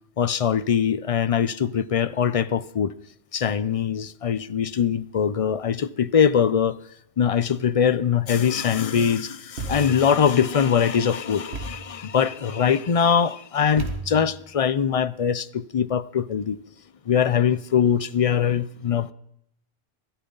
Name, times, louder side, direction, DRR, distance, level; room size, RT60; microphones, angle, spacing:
voice 1, 0.2-2.9 3.3-6.8 7.2-16.6 17.1-19.1, left 7 dB, 50° left, 0.4 m, -22 dB
Thump thud, 9.6-10.1 11.5-12.0 13.8-14.4, right 3 dB, 80° right, 1.8 m, -33 dB
15.0 x 12.5 x 3.9 m
omnidirectional pair, 1.1 m